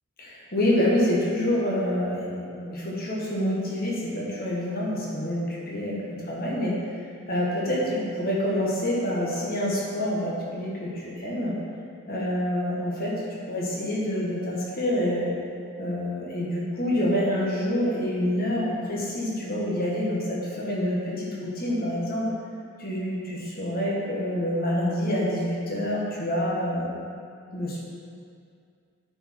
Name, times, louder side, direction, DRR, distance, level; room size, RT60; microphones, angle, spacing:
voice 1, 0.2-6.0 6.3-6.7 7.3-11.5 12.1-15.3 15.8-22.3 22.8-27.0 27.5-27.8, left 1 dB, 45° left, -5 dB, 1.6 m, -27 dB
9.5 x 5.0 x 4.4 m, 2.4 s
head